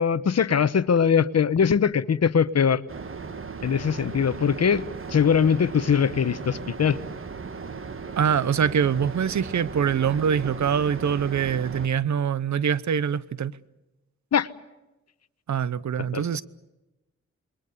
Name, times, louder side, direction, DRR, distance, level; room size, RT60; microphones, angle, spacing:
voice 1, 0.0-2.8 3.6-7.0 14.3-14.5 16.1-16.2, left 7 dB, 60° left, 1.0 m, -21 dB
sound 1, 2.9-11.9, right 5 dB, 45° right, 1.4 m, -37 dB
voice 2, 8.2-13.5 15.5-16.4, right 7 dB, 75° right, 0.9 m, -24 dB
28.5 x 22.0 x 6.8 m
wide cardioid pair, 105°, 29 cm